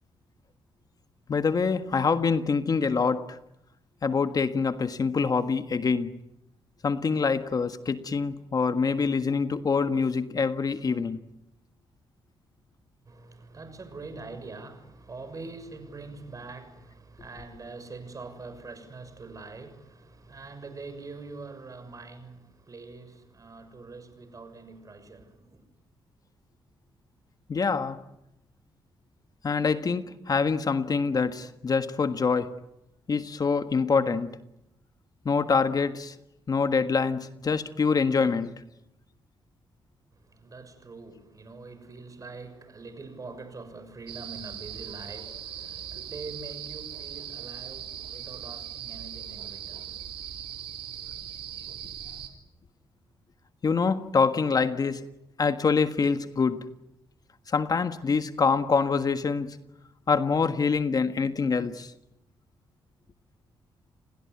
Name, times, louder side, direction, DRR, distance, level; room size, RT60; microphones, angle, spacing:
voice 1, 1.3-3.4 4.0-6.1 6.8-11.2 27.5-28.0 29.4-32.5 33.1-34.3 35.2-36.1 36.5-38.5 53.6-55.1 55.4-56.7 57.5-59.6 60.1-61.9, left 5 dB, 45° left, 1.5 m, -25 dB
voice 2, 13.0-25.6 40.1-50.2, right 3 dB, 40° right, 6.5 m, -44 dB
sound 1, 44.1-52.3, right 10 dB, 85° right, 3.4 m, -39 dB
29.5 x 20.5 x 9.7 m
cardioid pair, 75°, 9 cm